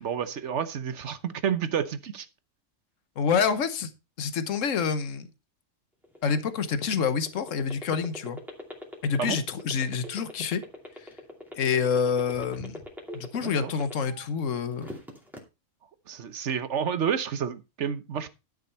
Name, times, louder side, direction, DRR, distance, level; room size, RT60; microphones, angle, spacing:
voice 1, 0.0-2.3 9.2-9.4 13.4-13.7 16.1-18.3, right 7 dB, 60° right, 1.2 m, -30 dB
voice 2, 3.2-3.9 4.2-5.3 6.2-8.4 9.0-10.6 11.6-12.8 13.1-14.9, left 6 dB, 70° left, 1.4 m, -27 dB
sound 1, 6.0-14.3 14.6-15.4, left 1 dB, ahead, 2.5 m, -41 dB
11.5 x 6.6 x 4.3 m
omnidirectional pair, 1.4 m